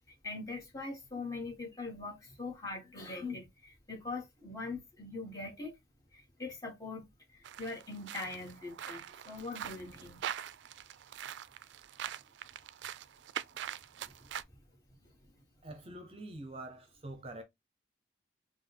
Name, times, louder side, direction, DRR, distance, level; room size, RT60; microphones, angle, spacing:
voice 1, 0.2-5.7 6.1-10.3 15.0-15.1, left 3 dB, 20° left, 1.6 m, -42 dB
sound 1, 7.4-14.4, right 10 dB, 80° right, 0.3 m, -43 dB
voice 2, 15.6-17.4, right 1 dB, 30° right, 0.7 m, -45 dB
5.3 x 2.4 x 3.4 m
head